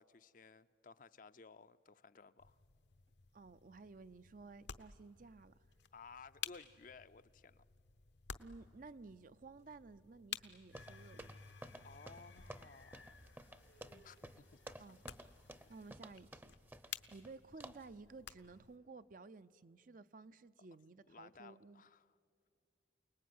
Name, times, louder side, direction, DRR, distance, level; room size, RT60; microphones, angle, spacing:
voice 1, 0.0-2.6 5.9-7.6 11.8-13.1 14.0-15.0 21.1-22.1, left 4 dB, 45° left, 0.6 m, -58 dB
sound 1, 2.4-18.8, left 9 dB, 70° left, 0.9 m, -54 dB
voice 2, 3.3-5.6 8.4-11.4 13.6-14.0 14.8-15.0 15.7-16.5 16.8-21.8, right 3 dB, 45° right, 0.5 m, -55 dB
sound 2, 10.7-15.9, left 2 dB, 90° left, 2.5 m, -61 dB
sound 3, 10.7-17.3 17.6-17.9, right 1 dB, 10° right, 0.7 m, -54 dB
28.5 x 19.5 x 9.5 m
head